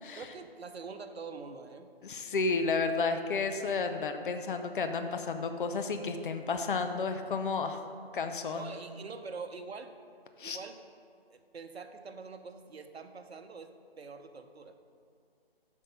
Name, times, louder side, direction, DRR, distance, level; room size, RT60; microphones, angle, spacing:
voice 1, 0.1-1.9 8.4-10.0 10.4-10.8 11.3-14.8, right 4 dB, 85° right, 7 dB, 0.8 m, -45 dB
voice 2, 2.0-7.8 8.1-8.7 10.4-10.6, left 4 dB, 55° left, 7 dB, 0.7 m, -32 dB
8.6 x 5.4 x 5.3 m, 2.3 s
figure-of-eight pair, 155°, 31 cm